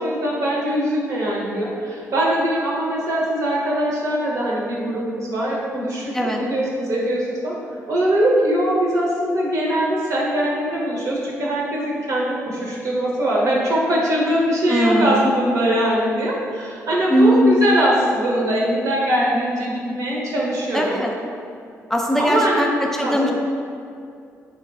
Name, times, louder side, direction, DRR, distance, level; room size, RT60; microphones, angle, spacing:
voice 1, 0.0-7.6 7.9-21.0 22.2-22.6 23.0-23.3, right 1 dB, 65° right, -5 dB, 0.7 m, -22 dB
voice 2, 14.7-15.3 17.1-17.5 20.7-21.1 21.9-23.3, equal, 5° left, 0 dB, 0.4 m, -19 dB
3.2 x 2.9 x 2.3 m, 2.4 s
cardioid pair, 70°, 6 cm